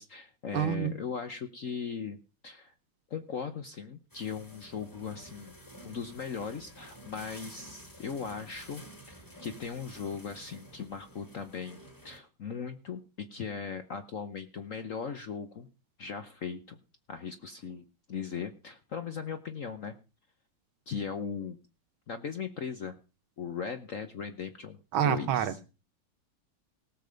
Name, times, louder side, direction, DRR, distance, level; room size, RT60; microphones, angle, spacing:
voice 1, 0.0-2.2 2.4-2.7 3.1-5.5 5.8-11.8 12.0-15.7 16.0-16.8 17.1-19.9 20.9-21.6 22.1-23.0 23.4-24.8 25.0-25.6, left 6 dB, 55° left, 0.9 m, -38 dB
voice 2, 0.5-0.9 24.9-25.6, right 10 dB, 75° right, 1.8 m, -27 dB
sound 1, 4.1-12.2, equal, 10° left, 2.2 m, -51 dB
18.0 x 7.2 x 5.2 m
omnidirectional pair, 2.3 m